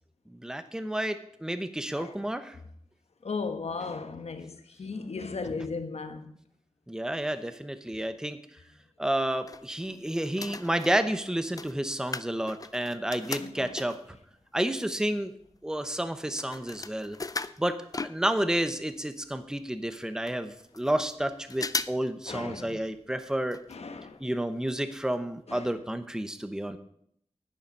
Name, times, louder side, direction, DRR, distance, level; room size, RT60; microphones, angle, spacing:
voice 1, 0.3-2.6 6.9-8.4 9.0-14.2 14.5-15.3 15.6-17.2 17.6-23.6 24.2-26.8, right 1 dB, 5° right, 0.8 m, -30 dB
voice 2, 3.2-6.4 13.4-13.7 22.3-22.8 23.7-24.2 25.5-25.7, left 4 dB, 70° left, 1.2 m, -36 dB
sound 1, 9.1-10.0 10.3-14.2 14.8-14.9 15.1-18.7 19.0-19.1 19.2-19.3 19.9-20.0 20.3-21.2 21.5-22.1 22.4-22.5 23.5-23.8 24.1-24.2 24.7-24.8 25.1-25.2, left 3 dB, 35° left, 0.4 m, -38 dB
10.0 x 10.0 x 5.4 m
wide cardioid pair, 100°, 11 cm